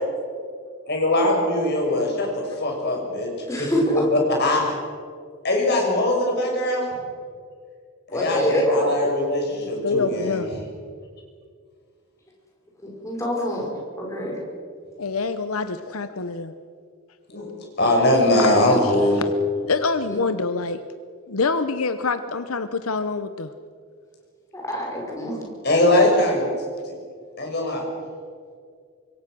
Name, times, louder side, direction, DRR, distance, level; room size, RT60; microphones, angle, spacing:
voice 1, 0.9-3.3 4.1-4.6 5.4-6.9 8.1-10.4 17.3-17.5 17.8-19.2 25.6-26.5 26.8-26.9 27.4-27.8, left 1 dB, 50° left, 0 dB, 6.4 m, -21 dB
voice 2, 3.5-4.0 8.1-8.9 10.0-10.1 12.8-13.7 14.0-14.4 20.1-20.2 24.5-25.4, equal, 15° left, -2 dB, 5.2 m, -25 dB
voice 3, 9.5-10.5 15.0-16.5 18.4-18.7 19.6-20.8 21.3-23.5, left 4 dB, 85° left, 10 dB, 0.9 m, -26 dB
25.5 x 22.5 x 6.3 m, 2.1 s
head